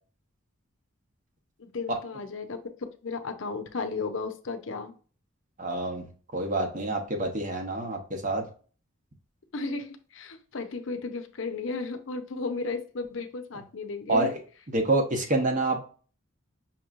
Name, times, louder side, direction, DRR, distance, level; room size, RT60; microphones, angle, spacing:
voice 1, 1.6-2.6 3.0-4.9 9.5-14.3, left 4 dB, 70° left, 7 dB, 0.6 m, -34 dB
voice 2, 5.6-8.4 14.1-14.3 14.7-15.8, right 2 dB, 40° right, 4 dB, 0.9 m, -27 dB
5.8 x 3.0 x 2.4 m, 0.39 s
head